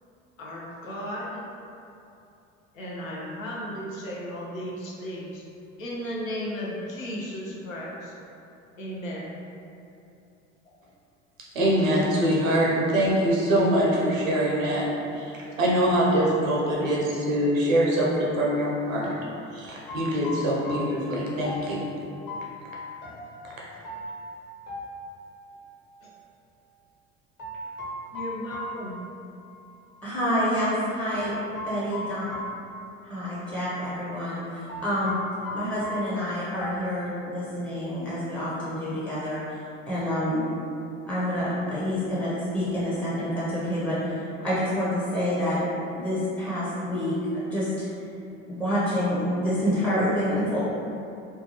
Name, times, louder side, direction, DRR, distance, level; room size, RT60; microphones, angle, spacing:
voice 1, 0.4-1.4 2.7-5.4 5.8-8.1 8.8-9.3 10.7-10.8 26.0-26.1 28.1-29.0, equal, 85° left, -4 dB, 0.6 m, -35 dB
voice 2, 11.5-19.1 19.5-21.8, right 1 dB, 80° right, -5 dB, 0.8 m, -24 dB
sound 1, 19.8-25.6 27.4-29.7 29.9-30.0 31.2-33.4 33.7-33.8 34.7-36.7, left 1 dB, 30° left, 0.8 m, -38 dB
voice 3, 30.0-31.3 31.6-32.2 33.0-35.2 35.5-39.4 39.9-40.4 41.1-45.6 45.9-47.9 48.5-50.6, equal, 5° left, -10 dB, 0.5 m, -27 dB
2.7 x 2.2 x 2.8 m, 2.7 s
figure-of-eight pair, 70°, 39 cm